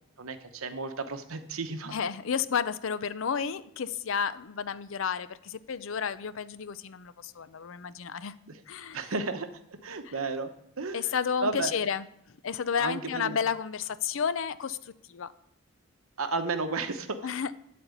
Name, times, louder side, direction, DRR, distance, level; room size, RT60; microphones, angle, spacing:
voice 1, 0.2-1.9 8.5-8.6 8.9-10.5 10.8-11.1 11.4-11.7 12.8-13.4 16.2-17.2, right 3 dB, 75° right, 8 dB, 1.0 m, -33 dB
voice 2, 1.9-8.3 8.7-9.1 10.0-10.2 10.9-15.3 17.2-17.5, left 7 dB, 65° left, 15 dB, 0.5 m, -32 dB
12.0 x 4.3 x 8.2 m, 0.72 s
head